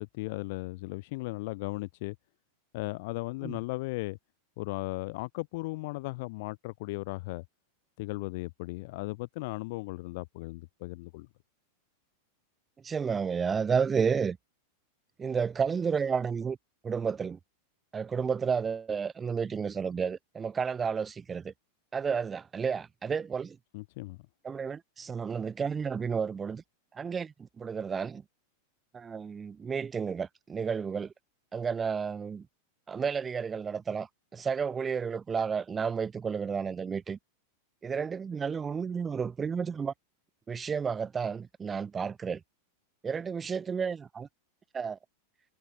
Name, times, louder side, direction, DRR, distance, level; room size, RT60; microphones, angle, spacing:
voice 1, 0.0-2.2 2.7-4.2 4.6-7.4 8.0-11.3 23.7-24.2, left 23 dB, 50° left, 1.9 m, -36 dB
voice 2, 12.8-14.4 15.2-16.6 16.8-17.4 17.9-21.5 21.9-23.6 24.4-26.6 26.9-28.2 28.9-31.1 31.5-32.5 32.9-37.2 37.8-39.9 40.5-42.4 43.0-44.3 44.7-45.0, right 6 dB, 20° right, 1.1 m, -31 dB
figure-of-eight pair, 90°, 0 cm